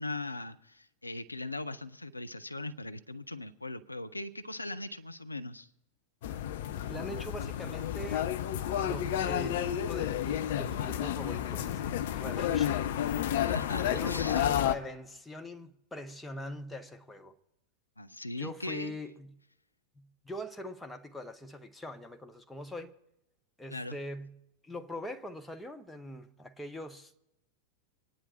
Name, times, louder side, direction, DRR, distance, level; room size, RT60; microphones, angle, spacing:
voice 1, 0.0-5.7 13.4-14.4 18.0-18.9 23.7-24.0, left 2 dB, 85° left, 0.7 m, -39 dB
sound 1, 6.2-14.8, left 10 dB, 55° left, 0.8 m, -31 dB
voice 2, 6.9-8.3 8.8-12.8 13.8-17.3 18.4-19.3 20.0-23.0 23.6-24.4 24.6-27.2, left 1 dB, 5° left, 1.0 m, -42 dB
25.0 x 10.0 x 4.2 m
figure-of-eight pair, 90°, 0 cm